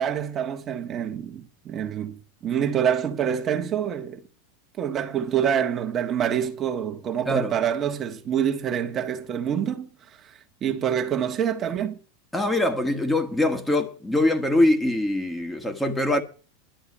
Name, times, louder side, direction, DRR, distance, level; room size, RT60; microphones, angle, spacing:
voice 1, 0.0-4.2 4.8-12.0, right 8 dB, 35° right, 1.4 m, -26 dB
voice 2, 12.3-16.2, left 1 dB, 10° left, 1.6 m, -23 dB
11.5 x 7.1 x 8.4 m
hypercardioid pair, 110°, 0 cm